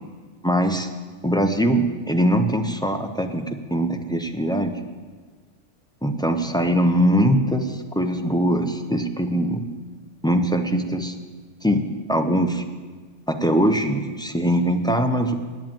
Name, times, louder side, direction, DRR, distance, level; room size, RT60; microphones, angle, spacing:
voice 1, 0.4-0.9 1.2-4.8 6.0-9.6 10.2-11.2 11.6-12.6 13.3-15.3, equal, 5° left, 5 dB, 0.4 m, -22 dB
9.0 x 8.2 x 8.9 m, 1.5 s
omnidirectional pair, 1.3 m